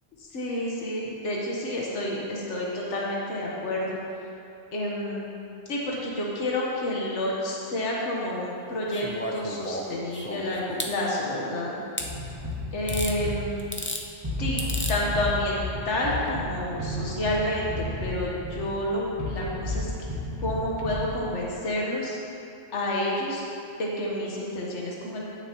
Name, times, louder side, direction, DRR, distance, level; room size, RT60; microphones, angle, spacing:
voice 1, 0.2-4.0 4.7-5.3 5.7-11.8 12.7-13.6 14.4-14.6 14.9-15.6 15.9-19.9 20.4-22.2 22.7-23.4 23.8-25.3, left 1 dB, 65° left, -4 dB, 1.6 m, -29 dB
sound 1, 8.9-10.9 12.0-12.1 12.9-13.2 13.6-14.0 14.6-15.0 16.2-16.3, left 1 dB, 15° left, 0.4 m, -33 dB
sound 2, 12.0-21.6, left 1 dB, 20° right, 1.9 m, -33 dB
16.0 x 6.8 x 3.0 m, 2.5 s
omnidirectional pair, 1.3 m